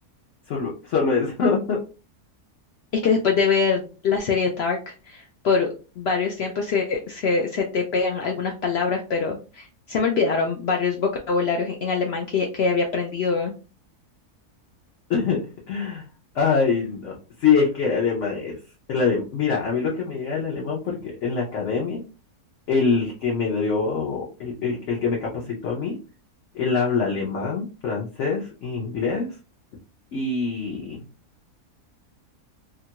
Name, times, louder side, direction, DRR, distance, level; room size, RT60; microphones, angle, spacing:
voice 1, 0.5-1.8 15.1-16.0 16.3-18.6 18.9-22.0 22.7-26.0 26.5-29.3 30.1-31.0, left 5 dB, 60° left, -3 dB, 0.9 m, -24 dB
voice 2, 2.9-5.7 6.0-13.5, left 5 dB, 75° left, 1 dB, 0.6 m, -24 dB
2.9 x 2.3 x 2.8 m, 0.33 s
omnidirectional pair, 1.6 m